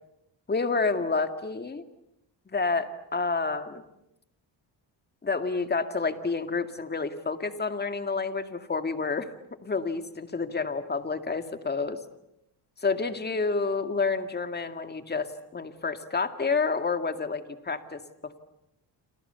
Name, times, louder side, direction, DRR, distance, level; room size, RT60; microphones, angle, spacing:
voice 1, 0.5-1.8 2.5-3.8 5.2-9.3 9.6-12.0 12.8-18.4, left 4 dB, 20° left, 8 dB, 2.2 m, -29 dB
29.5 x 26.5 x 7.0 m, 0.83 s
cardioid pair, 115°, 44 cm